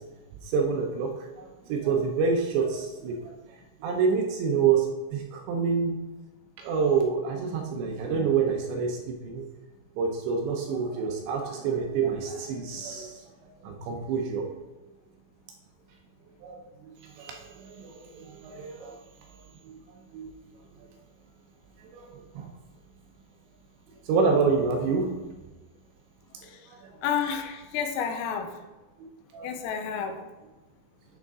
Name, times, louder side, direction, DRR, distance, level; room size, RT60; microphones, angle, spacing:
voice 1, 0.5-1.1 1.4-3.2 3.8-4.9 5.1-6.0 6.6-9.4 10.0-13.1 13.6-14.4 16.4-16.6 17.2-17.4 17.6-19.0 19.7-19.8 20.1-20.3 21.9-22.0 22.4-22.5 24.1-25.1 29.3-29.5, right 5 dB, 75° right, 2 dB, 2.8 m, -27 dB
voice 2, 27.0-28.6 29.4-30.2, left 7 dB, 90° left, 6 dB, 3.4 m, -30 dB
9.4 x 6.6 x 3.6 m, 1.1 s
omnidirectional pair, 5.8 m